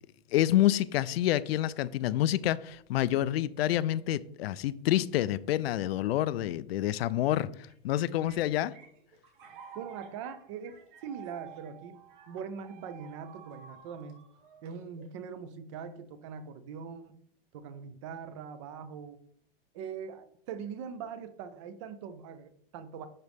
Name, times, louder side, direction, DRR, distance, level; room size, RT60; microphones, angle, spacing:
voice 1, 0.3-8.8, left 13 dB, 85° left, 0.5 m, -28 dB
sound 1, 7.7-15.2, right 8 dB, 60° right, 1.5 m, -52 dB
voice 2, 9.7-14.2 14.6-17.2 17.5-19.2 19.7-23.1, right 6 dB, 30° right, 0.5 m, -42 dB
11.0 x 3.9 x 3.5 m
supercardioid pair, 170°, 30 cm